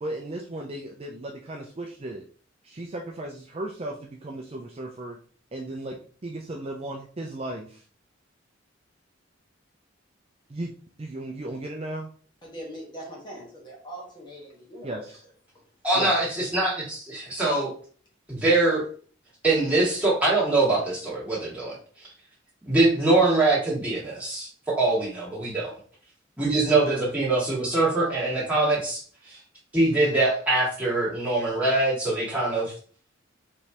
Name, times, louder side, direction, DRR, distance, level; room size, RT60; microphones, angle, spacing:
voice 1, 0.0-2.2 2.6-5.2 5.5-7.8 10.5-10.7 11.0-12.1 14.8-15.2 15.9-16.1, right 1 dB, 30° right, 1 dB, 0.5 m, -35 dB
voice 2, 12.4-15.1 16.0-16.1, right 1 dB, 25° left, -3 dB, 1.4 m, -40 dB
voice 3, 15.8-17.7 18.3-18.9 19.4-21.8 22.7-25.7 26.4-29.0 29.3-29.4 29.7-32.7, right 2 dB, 10° right, -7 dB, 2.1 m, -23 dB
5.1 x 3.3 x 2.9 m, 0.43 s
head